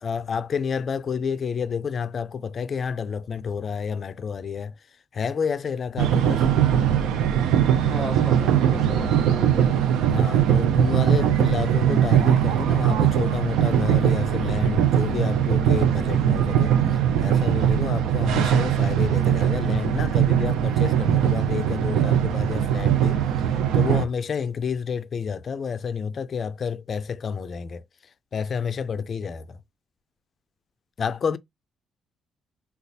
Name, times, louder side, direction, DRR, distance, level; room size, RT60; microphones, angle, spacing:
voice 1, 0.0-4.7 5.1-6.5 10.1-27.8 28.3-29.6 31.0-31.4, left 6 dB, 50° left, 0.3 m, -29 dB
sound 1, 6.0-24.1, right 10 dB, 85° right, 0.4 m, -21 dB
voice 2, 7.9-9.6, right 3 dB, 35° right, 1.9 m, -32 dB
4.0 x 2.3 x 2.6 m
cardioid pair, 90°, 0 cm